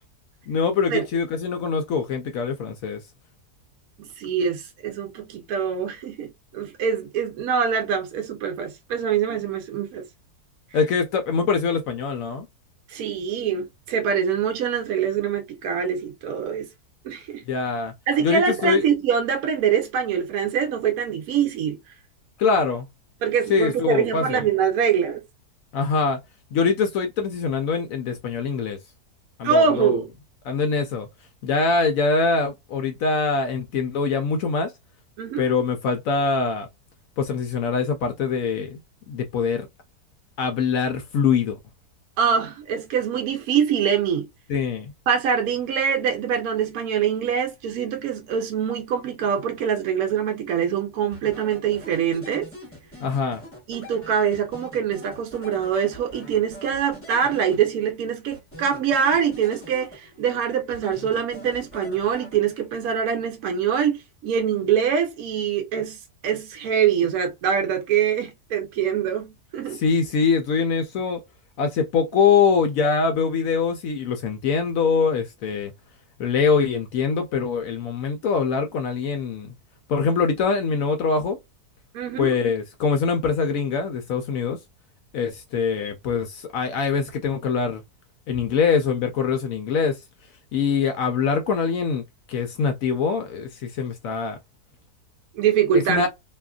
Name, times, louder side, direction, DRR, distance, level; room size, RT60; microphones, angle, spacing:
voice 1, 0.5-3.0 10.7-12.5 17.5-17.9 18.2-18.8 22.4-22.9 23.5-24.5 25.7-26.2 26.5-28.8 29.4-30.0 30.4-31.1 31.4-34.7 35.4-36.7 37.2-38.8 39.1-39.7 40.4-41.6 44.5-44.9 53.0-53.4 69.7-71.2 71.6-75.7 76.2-79.5 79.9-81.4 82.2-84.6 85.1-87.8 88.3-90.0 90.5-92.0 92.3-94.4 95.9-96.1, left 5 dB, 70° left, 0.9 m, -23 dB
voice 2, 4.0-10.0 12.9-16.7 17.0-17.4 18.1-21.8 23.2-25.2 29.4-30.1 35.2-35.4 42.2-44.3 45.1-52.5 53.7-69.8 81.9-82.3 95.3-96.1, right 7 dB, 70° right, 1.0 m, -24 dB
sound 1, 51.1-58.0 58.3-60.3 60.7-62.8, equal, 10° left, 1.0 m, -44 dB
2.8 x 2.4 x 2.2 m
omnidirectional pair, 1.7 m